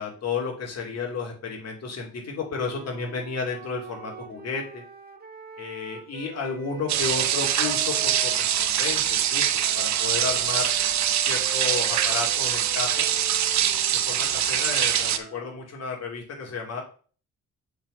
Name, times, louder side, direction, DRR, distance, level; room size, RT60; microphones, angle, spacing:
voice 1, 0.0-4.8 5.6-10.7 11.2-13.1 14.0-16.8, left 5 dB, 55° left, 0 dB, 2.7 m, -32 dB
Wind instrument woodwind instrument, 2.5-8.9 9.6-15.6, right 5 dB, 30° right, 1.3 m, -43 dB
sound 1, 6.9-15.2, right 10 dB, 65° right, 0.8 m, -24 dB
6.9 x 4.1 x 5.5 m, 0.41 s
cardioid pair, 90°, 30 cm